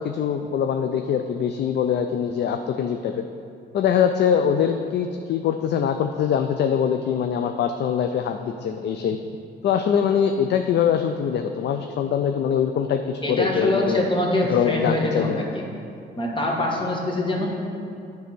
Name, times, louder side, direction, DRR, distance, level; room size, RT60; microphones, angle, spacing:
voice 1, 0.0-3.3 3.7-9.2 9.6-14.0 14.5-15.4, left 8 dB, 60° left, 6 dB, 0.4 m, -23 dB
voice 2, 13.2-15.6 16.2-17.5, left 1 dB, 25° left, -1 dB, 1.4 m, -24 dB
9.3 x 3.5 x 6.0 m, 2.5 s
cardioid pair, 90°, 20 cm